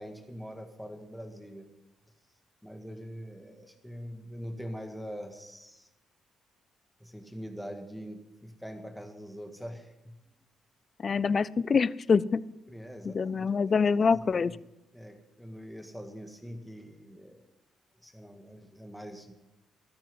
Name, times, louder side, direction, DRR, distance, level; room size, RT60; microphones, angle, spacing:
voice 1, 0.0-1.7 2.6-5.9 7.0-10.2 12.7-14.6 14.9-17.5 18.0-19.3, equal, ahead, 4 dB, 1.8 m, -43 dB
voice 2, 11.0-12.5 13.0-14.6, left 5 dB, 40° left, 20 dB, 0.4 m, -25 dB
13.5 x 13.0 x 5.5 m, 0.94 s
cardioid pair, 90°, 0 cm